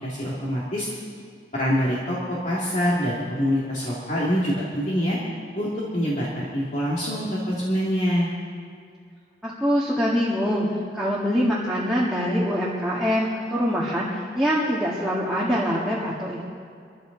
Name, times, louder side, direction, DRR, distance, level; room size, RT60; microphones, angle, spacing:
voice 1, 0.0-0.9 1.5-5.2 5.6-8.3, equal, 40° left, -7 dB, 2.4 m, -25 dB
voice 2, 9.4-10.7 10.9-16.4, equal, ahead, -8 dB, 1.8 m, -24 dB
23.5 x 14.5 x 4.0 m, 2.3 s
head